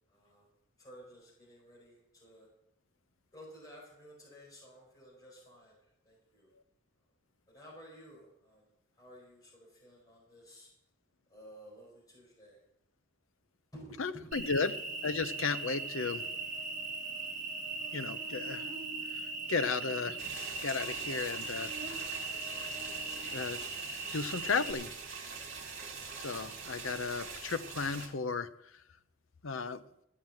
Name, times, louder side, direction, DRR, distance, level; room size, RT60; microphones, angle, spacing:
voice 1, 0.1-0.5 0.8-2.5 3.3-6.5 7.5-8.7 8.9-10.7 11.3-12.6 13.7-14.5, equal, 20° left, -4 dB, 4.6 m, -54 dB
voice 2, 14.0-14.7 15.0-16.3 17.9-18.7 19.1-19.2 19.5-20.2 20.6-21.7 23.3-23.6 24.1-24.9 26.2-28.5 29.4-29.8, left 4 dB, 70° left, 11 dB, 0.7 m, -34 dB
Cricket, 14.3-24.7, right 3 dB, 40° right, 1.4 m, -39 dB
sound 1, 20.2-28.1, right 5 dB, 55° right, 2.3 m, -44 dB
14.0 x 7.3 x 7.7 m, 0.79 s
head